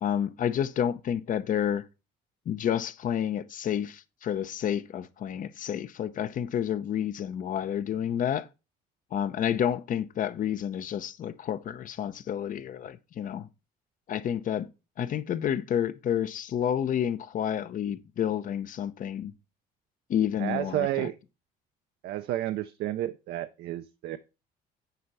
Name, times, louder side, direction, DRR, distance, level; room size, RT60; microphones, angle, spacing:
voice 1, 0.0-1.8 2.5-8.5 9.1-13.5 14.1-14.7 15.0-19.3 20.1-21.1, left 9 dB, 50° left, 0.8 m, -30 dB
voice 2, 20.4-21.1 22.0-24.2, right 14 dB, 75° right, 0.6 m, -31 dB
9.4 x 4.6 x 5.5 m
cardioid pair, 110°, 17 cm